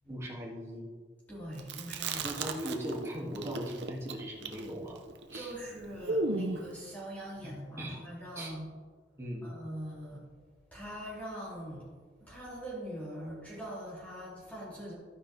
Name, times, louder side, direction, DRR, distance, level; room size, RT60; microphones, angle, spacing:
voice 1, 0.1-0.9 2.2-5.0 5.3-5.6 7.4-8.0 8.3-8.5 9.2-9.5, equal, 15° right, -4 dB, 2.5 m, -39 dB
voice 2, 1.3-2.2 5.3-8.7 9.4-10.2 10.7-11.8 12.2-14.9, equal, 10° left, -8 dB, 3.0 m, -42 dB
Chewing mastication, 1.6-3.1 3.3-6.7, right 3 dB, 70° right, 0.9 m, -35 dB
13.5 x 9.9 x 3.5 m, 1.5 s
head